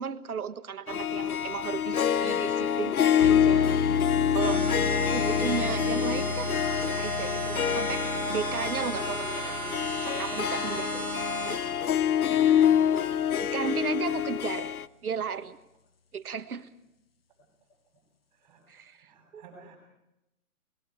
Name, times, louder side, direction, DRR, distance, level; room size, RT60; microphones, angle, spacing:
voice 1, 0.0-4.6 5.1-6.5 6.8-9.7 10.0-11.2 13.4-14.7 15.0-15.6 16.1-16.7 18.7-19.4, right 6 dB, 80° right, 9 dB, 1.7 m, -35 dB
Harp, 0.9-14.9, left 9 dB, 75° left, 0.9 m, -26 dB
sound 1, 3.2-12.7, left 5 dB, 45° left, 0.7 m, -35 dB
sound 2, 4.4-11.6, right 2 dB, 5° left, 2.6 m, -34 dB
voice 2, 12.4-13.0 18.4-19.8, right 3 dB, 15° right, -1 dB, 7.6 m, -51 dB
29.5 x 21.0 x 4.8 m, 0.90 s
hypercardioid pair, 175°, 44 cm